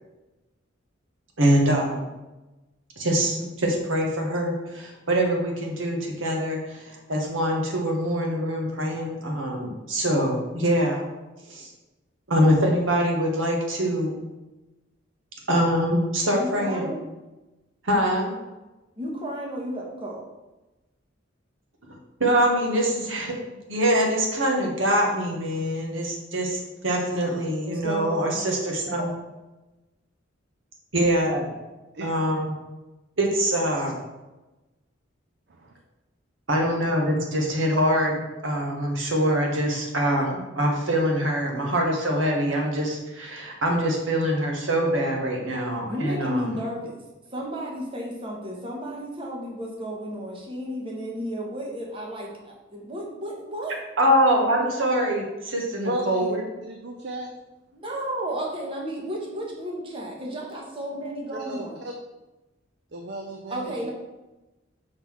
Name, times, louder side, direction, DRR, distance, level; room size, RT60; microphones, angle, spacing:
voice 1, 1.4-2.0 3.0-11.0 11.5-11.7 12.3-14.2 15.5-16.9 17.8-18.3 22.2-23.4 23.7-29.1 30.9-31.5 32.0-32.6 33.2-34.0 36.5-46.5 54.0-56.4, equal, 85° right, 0 dB, 1.5 m, -24 dB
voice 2, 16.4-17.0 19.0-20.2 27.6-28.5 45.9-47.0 47.3-53.8 57.7-61.8 63.5-63.9, right 1 dB, 30° right, -2 dB, 1.3 m, -33 dB
voice 3, 55.8-56.3 56.6-57.3 61.3-61.9 62.9-63.9, right 1 dB, 60° right, 3 dB, 0.6 m, -34 dB
5.7 x 3.8 x 6.1 m, 1.1 s
head